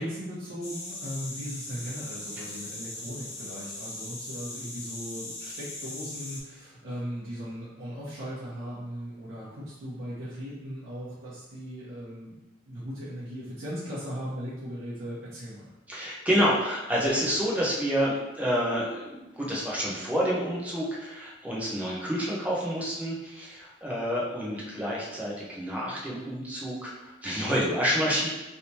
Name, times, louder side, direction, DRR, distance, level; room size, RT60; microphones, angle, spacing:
voice 1, 0.0-12.4 12.7-15.7, equal, 85° right, -10 dB, 0.9 m, -38 dB
sound 1, 0.6-6.4, left 2 dB, 35° left, 0.7 m, -39 dB
voice 2, 15.9-28.3, equal, 5° right, -5 dB, 0.7 m, -28 dB
3.3 x 2.8 x 2.8 m, 1.0 s
head